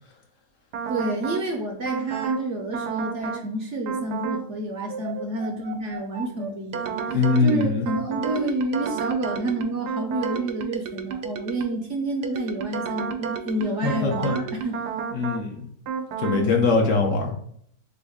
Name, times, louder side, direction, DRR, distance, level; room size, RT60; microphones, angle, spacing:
sound 1, 0.7-1.5 1.9-2.4 2.7-3.5 3.9-4.4 4.8-11.8 12.2-15.5 15.9-16.4, right 6 dB, 90° right, 1.2 m, -31 dB
voice 1, 0.9-14.8 16.2-16.7, right 1 dB, 60° right, 2 dB, 0.8 m, -29 dB
voice 2, 7.1-7.9 13.8-14.3 15.1-15.7 16.2-17.3, left 4 dB, 60° left, 2 dB, 1.0 m, -22 dB
3.9 x 3.4 x 3.5 m, 0.65 s
omnidirectional pair, 1.7 m